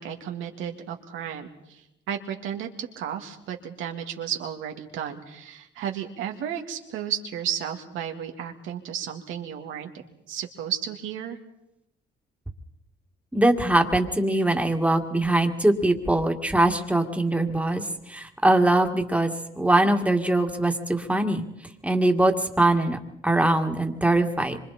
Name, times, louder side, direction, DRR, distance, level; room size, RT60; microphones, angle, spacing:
voice 1, 0.0-9.9 10.3-11.4, right 9 dB, 90° right, 4 dB, 2.2 m, -33 dB
voice 2, 13.3-21.4 21.8-24.6, right 1 dB, 5° right, 4 dB, 2.1 m, -22 dB
26.0 x 25.0 x 4.3 m, 0.84 s
cardioid pair, 90°, 20 cm